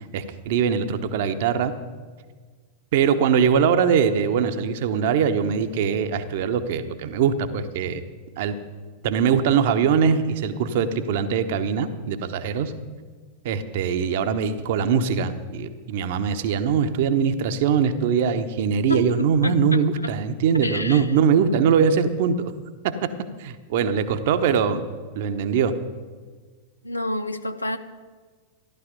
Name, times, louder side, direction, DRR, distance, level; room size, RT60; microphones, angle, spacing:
voice 1, 0.1-1.7 2.9-8.0 8.4-8.5 9.0-12.7 13.4-22.5 22.8-22.9 23.4-24.8 25.1-25.7, right 7 dB, 50° right, 9 dB, 1.0 m, -22 dB
voice 2, 18.9-20.1 20.6-21.1 26.8-27.8, left 1 dB, 85° left, 9 dB, 0.7 m, -29 dB
14.5 x 11.5 x 5.2 m, 1.5 s
figure-of-eight pair, 90°, 0 cm